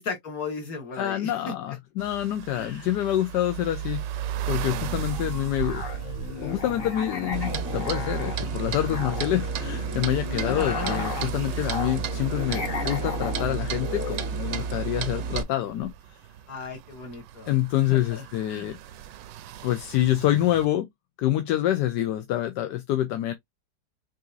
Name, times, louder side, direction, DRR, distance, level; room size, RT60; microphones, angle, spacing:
voice 1, 0.0-1.5 2.5-2.9 10.4-11.1 16.5-17.6 17.9-18.2 18.5-18.7, left 4 dB, 55° left, 2.2 m, -35 dB
voice 2, 1.0-6.1 6.4-15.9 17.5-18.8 19.6-20.9 21.2-23.3, left 13 dB, 80° left, 1.2 m, -27 dB
sound 1, 2.0-20.7, right 11 dB, 85° right, 1.2 m, -39 dB
Musical instrument, 4.6-14.7, left 4 dB, 35° left, 1.2 m, -35 dB
Clock, 7.3-15.4, right 6 dB, 60° right, 0.7 m, -31 dB
6.1 x 2.8 x 2.5 m
omnidirectional pair, 1.9 m